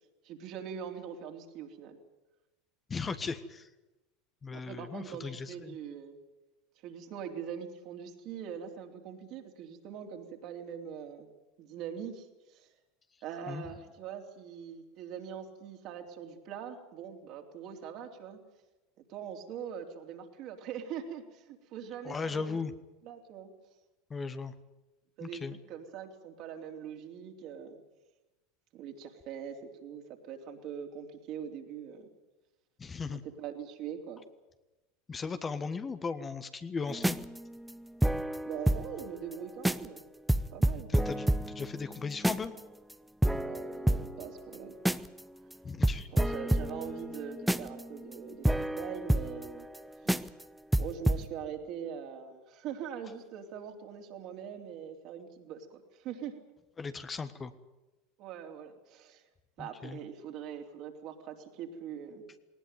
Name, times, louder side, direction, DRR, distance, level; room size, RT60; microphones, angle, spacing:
voice 1, 0.2-2.0 4.5-6.1 6.8-11.3 11.6-12.7 13.2-18.4 19.1-22.6 23.0-23.5 25.2-27.8 28.7-32.1 33.1-34.2 38.4-40.0 40.5-40.9 43.3-44.8 46.1-49.7 50.0-50.3 50.8-56.4 58.2-59.2 59.6-62.3, right 8 dB, 55° right, 3 dB, 3.5 m, -42 dB
voice 2, 2.9-3.7 4.4-5.8 13.5-13.6 22.0-22.7 24.1-24.5 25.2-25.6 32.8-33.2 35.1-37.2 40.9-42.5 45.6-46.1 56.8-57.5 59.6-60.0, left 5 dB, 25° left, 10 dB, 1.4 m, -37 dB
sound 1, 36.9-39.0 39.3-39.4 39.6-40.0 40.3-42.6 42.9-43.0 43.2-45.2 45.5-45.6 45.8-49.8 50.1-50.4 50.7-51.3, right 1 dB, 5° right, 0.8 m, -29 dB
19.5 x 19.0 x 9.3 m, 1.0 s
hypercardioid pair, 80°, 0 cm